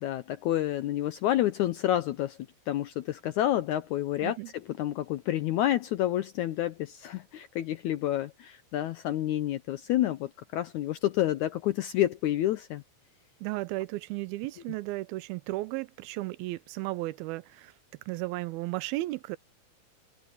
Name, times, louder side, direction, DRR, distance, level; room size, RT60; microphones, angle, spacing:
voice 1, 0.0-2.4 2.7-4.4 4.8-12.8, left 13 dB, 80° left, 1.7 m, -29 dB
voice 2, 13.4-17.7 18.1-19.4, right 19 dB, 90° right, 2.5 m, -34 dB
open air
omnidirectional pair, 4.2 m